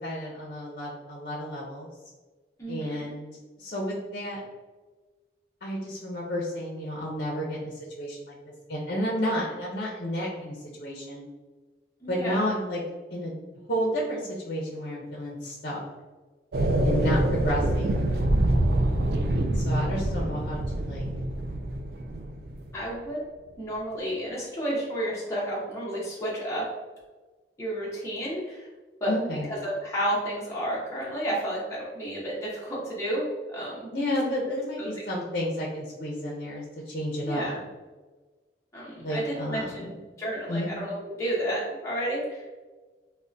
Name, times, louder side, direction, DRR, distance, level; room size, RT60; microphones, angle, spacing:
voice 1, 0.0-1.9 2.7-3.3 3.6-4.4 5.6-8.4 8.7-11.2 12.1-12.8 13.1-13.3 13.7-15.8 16.8-18.2 19.5-21.1 29.1-29.5 33.9-37.5 39.0-39.9 40.5-40.7, equal, 55° left, -4 dB, 0.5 m, -31 dB
voice 2, 2.6-3.1 12.0-12.5 22.7-23.2 23.6-26.7 27.6-28.7 29.0-29.1 29.5-33.9 34.8-34.9 37.2-37.6 38.7-42.4, right 1 dB, 15° left, -6 dB, 0.6 m, -31 dB
sound 1, 16.5-22.7, right 1 dB, 60° right, 0.3 m, -25 dB
3.4 x 2.1 x 2.5 m, 1.3 s
head